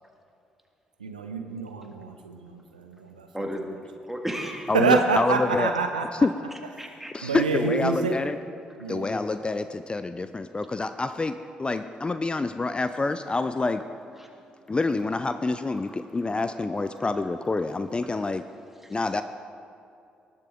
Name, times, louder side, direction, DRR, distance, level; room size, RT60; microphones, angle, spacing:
voice 1, 1.0-3.5 4.7-6.3 7.2-8.1 8.8-9.2, right 4 dB, 90° right, 6 dB, 0.5 m, -27 dB
voice 2, 3.3-3.7 4.1-4.7 6.8-7.1 14.2-14.8 18.8-19.0, equal, 5° right, 2 dB, 1.9 m, -34 dB
voice 3, 4.7-5.7 6.1-6.3 7.1-8.4 8.9-13.8 14.7-18.4 18.9-19.2, left 3 dB, 25° left, 10 dB, 0.4 m, -27 dB
19.0 x 8.3 x 3.7 m, 2.7 s
figure-of-eight pair, 45°, 4 cm